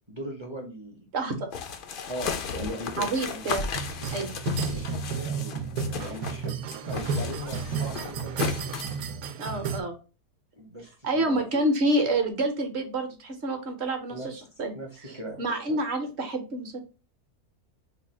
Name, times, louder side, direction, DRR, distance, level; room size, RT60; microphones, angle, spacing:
voice 1, 0.1-1.1 2.1-3.5 4.7-6.6 6.8-8.6 10.5-11.4 14.1-14.4 14.7-15.8, equal, 30° right, 0 dB, 0.5 m, -39 dB
voice 2, 1.1-1.5 3.0-3.7 4.1-4.3 9.4-9.9 11.0-14.7 15.0-16.8, right 1 dB, 55° right, 5 dB, 0.9 m, -28 dB
sound 1, 1.5-6.4 6.7-9.0, left 6 dB, 85° left, 0.4 m, -35 dB
sound 2, 3.7-9.8, right 4 dB, 80° right, 1.1 m, -32 dB
3.3 x 2.3 x 4.3 m, 0.33 s
omnidirectional pair, 1.5 m